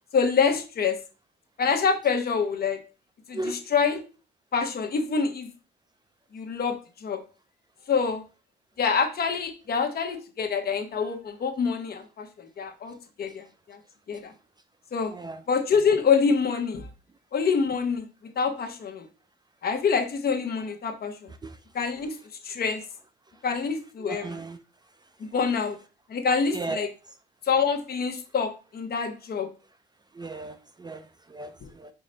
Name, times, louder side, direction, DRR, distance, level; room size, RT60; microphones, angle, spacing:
voice 1, 0.1-0.9 1.6-2.8 3.3-4.0 4.5-5.5 6.3-7.2 7.9-8.2 8.8-13.8 14.1-14.3 14.9-15.1 15.5-16.9 17.3-18.1 18.4-19.1 19.6-21.3 21.7-22.2 22.4-22.8 23.4-24.4 25.2-25.8 26.1-26.9 27.5-29.5 31.6-31.7, left 5 dB, 50° left, 0.9 m, -26 dB
voice 2, 15.1-15.4 21.4-21.6 24.0-24.6 26.5-26.9 30.1-31.9, right 2 dB, 20° right, 0.4 m, -36 dB
4.8 x 2.1 x 3.9 m
cardioid pair, 90°, 20 cm